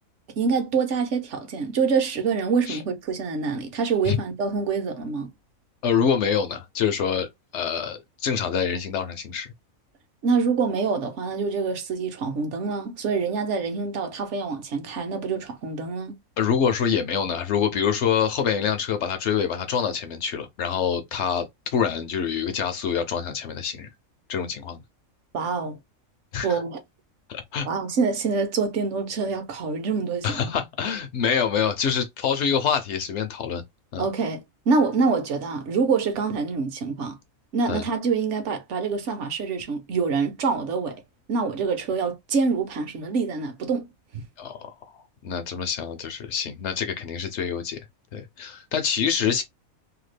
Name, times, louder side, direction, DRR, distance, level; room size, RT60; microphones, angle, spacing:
voice 1, 0.4-5.3 10.2-16.1 25.3-25.8 26.4-26.8 27.6-30.6 34.0-37.2 37.5-41.0 41.3-43.9 44.1-44.2, right 5 dB, 65° right, 1.0 m, -26 dB
voice 2, 5.8-7.3 7.5-9.5 16.4-21.5 21.7-23.9 24.3-24.8 26.3-26.6 27.3-27.7 30.2-33.6 33.9-34.1 37.7-37.9 44.4-44.7 45.2-47.8 48.1-49.4, left 7 dB, 65° left, 0.8 m, -26 dB
2.8 x 2.2 x 3.2 m
omnidirectional pair, 1.4 m